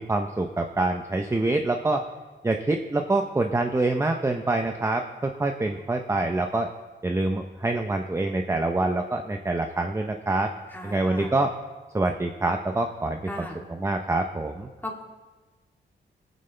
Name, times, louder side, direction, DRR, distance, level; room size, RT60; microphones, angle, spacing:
voice 1, 0.0-2.0 2.4-6.7 7.0-10.5 10.8-11.5 11.9-14.7, right 2 dB, 15° right, 4 dB, 0.7 m, -26 dB
voice 2, 10.7-11.3 13.3-13.6 14.8-15.0, left 1 dB, 10° left, -2 dB, 2.8 m, -36 dB
22.5 x 9.3 x 3.4 m, 1.3 s
cardioid pair, 105°, 20 cm